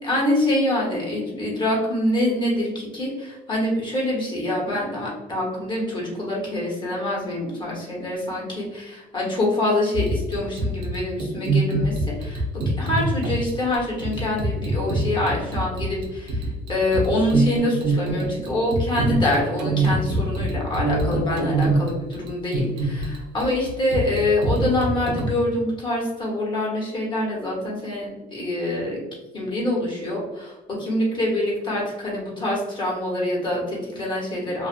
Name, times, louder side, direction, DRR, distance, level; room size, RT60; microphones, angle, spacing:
voice 1, 0.0-29.0 29.3-34.7, left 1 dB, 25° left, -5 dB, 1.3 m, -25 dB
sound 1, 9.9-25.3, right 2 dB, 80° right, 0.8 m, -25 dB
2.6 x 2.5 x 2.5 m, 1.1 s
cardioid pair, 110°, 17 cm